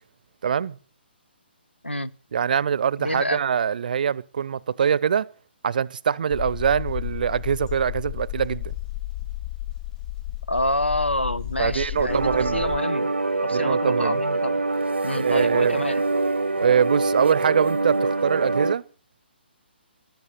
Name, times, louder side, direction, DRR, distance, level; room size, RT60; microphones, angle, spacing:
voice 1, 0.4-0.8 2.3-5.3 5.6-8.7 11.6-12.6 13.5-14.2 15.1-15.8 16.6-18.8, right 7 dB, 50° right, 0.7 m, -23 dB
voice 2, 3.0-3.4 10.5-13.1 13.4-14.6 15.0-16.0, left 1 dB, 90° left, 0.9 m, -27 dB
sound 1, 6.3-12.8, left 16 dB, 40° left, 2.0 m, -33 dB
sound 2, 12.1-18.8, right 3 dB, 75° right, 0.9 m, -25 dB
14.0 x 12.0 x 8.5 m
figure-of-eight pair, 135°, 6 cm